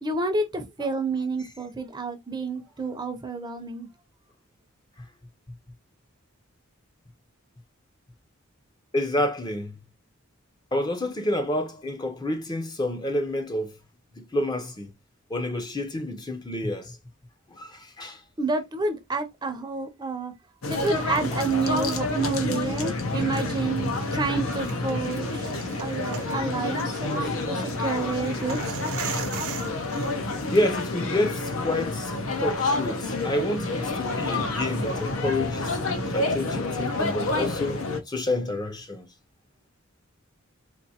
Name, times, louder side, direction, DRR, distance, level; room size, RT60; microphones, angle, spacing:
voice 1, 0.0-3.9 18.4-20.3 20.7-25.5 25.8-28.8, right 3 dB, 20° right, 0.6 m, -29 dB
voice 2, 8.9-9.8 10.7-13.8 14.2-15.0 15.3-17.0 17.5-18.2 30.5-35.8 36.1-39.1, left 1 dB, 20° left, 0.6 m, -29 dB
sound 1, 20.6-38.0, left 2 dB, 85° left, 0.8 m, -28 dB
sound 2, 24.4-30.6, right 6 dB, 85° right, 0.7 m, -39 dB
4.3 x 2.6 x 2.8 m
head